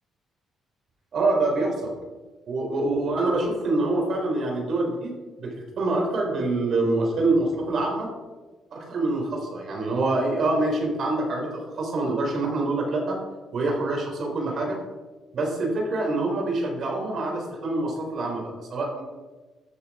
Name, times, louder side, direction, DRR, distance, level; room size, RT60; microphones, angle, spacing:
voice 1, 1.1-1.9 2.5-8.1 8.7-13.2 13.5-14.8 15.3-19.0, right 2 dB, 60° right, 1 dB, 3.8 m, -25 dB
13.5 x 7.1 x 4.9 m, 1.2 s
cardioid pair, 90°, 0 cm